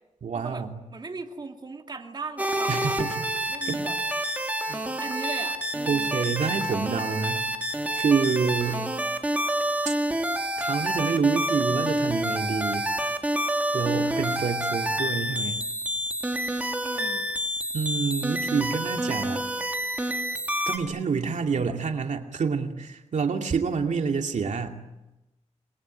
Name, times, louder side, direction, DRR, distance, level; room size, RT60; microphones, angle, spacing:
voice 1, 0.2-0.8 2.7-3.8 4.6-4.8 5.9-7.5 7.9-8.8 9.8-9.9 10.6-12.9 13.7-15.6 17.7-19.4 20.7-24.8, right 5 dB, 85° right, 4 dB, 2.5 m, -27 dB
voice 2, 0.9-3.0 3.5-3.9 4.4-4.6 5.0-6.1 14.0-14.4 16.8-17.3, right 4 dB, 35° right, 3 dB, 2.7 m, -38 dB
sound 1, 2.4-20.8, right 1 dB, 10° right, 3.4 m, -28 dB
28.5 x 22.5 x 9.4 m, 0.98 s
wide cardioid pair, 170°, 12 cm